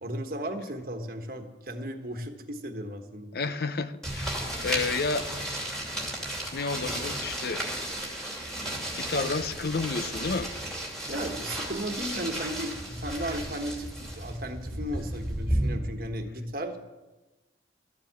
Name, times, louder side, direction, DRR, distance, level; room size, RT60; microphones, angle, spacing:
voice 1, 0.0-3.3 11.1-16.8, right 1 dB, 50° right, 5 dB, 1.3 m, -35 dB
voice 2, 3.3-5.3 6.5-7.6 9.0-10.5, left 4 dB, 55° left, 12 dB, 0.6 m, -31 dB
sound 1, 4.0-15.7, right 1 dB, 5° left, 2.7 m, -33 dB
13.5 x 7.5 x 8.2 m, 1.1 s
head